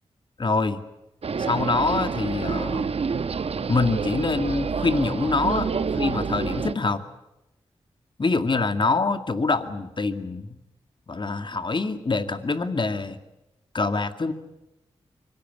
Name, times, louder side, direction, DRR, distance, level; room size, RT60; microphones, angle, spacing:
voice 1, 0.4-0.8 1.4-2.9 3.7-5.7 6.0-7.0 8.2-10.6 11.1-13.2 13.7-14.3, left 3 dB, 45° left, 9 dB, 2.1 m, -25 dB
sound 1, 1.2-6.7, right 5 dB, 65° right, 1.1 m, -28 dB
24.5 x 17.0 x 9.8 m, 0.96 s
cardioid pair, 40°, 11 cm